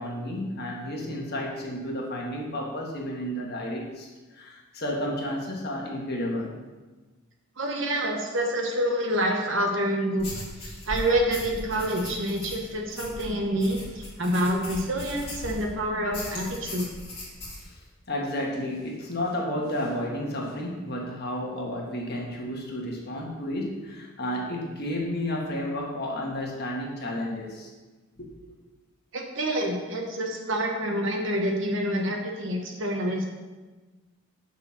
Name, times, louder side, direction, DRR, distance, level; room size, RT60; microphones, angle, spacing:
voice 1, 0.0-6.5 17.6-27.7 28.2-28.3, left 1 dB, 45° left, -2 dB, 1.4 m, -32 dB
voice 2, 7.6-10.3 10.6-16.9 29.1-33.2, right 1 dB, 60° right, 2 dB, 1.1 m, -27 dB
sound 1, 10.2-15.7 16.1-17.6, left 1 dB, 25° left, 2.0 m, -38 dB
6.4 x 4.3 x 6.2 m, 1.3 s
head